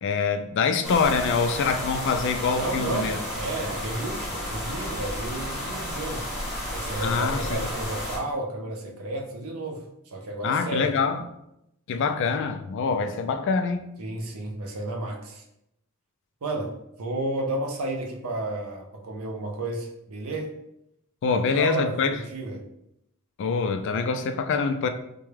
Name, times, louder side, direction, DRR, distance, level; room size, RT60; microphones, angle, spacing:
voice 1, 0.0-3.2 7.0-7.7 10.4-11.2 11.9-13.9 21.2-22.2 23.4-24.9, left 5 dB, 55° left, 0.3 m, -25 dB
sound 1, 0.8-8.2, equal, ahead, 1.0 m, -32 dB
voice 2, 2.5-6.3 6.7-11.0 14.0-15.4 16.4-20.6 21.3-22.6, right 2 dB, 80° right, 0.6 m, -32 dB
3.4 x 2.2 x 3.2 m
head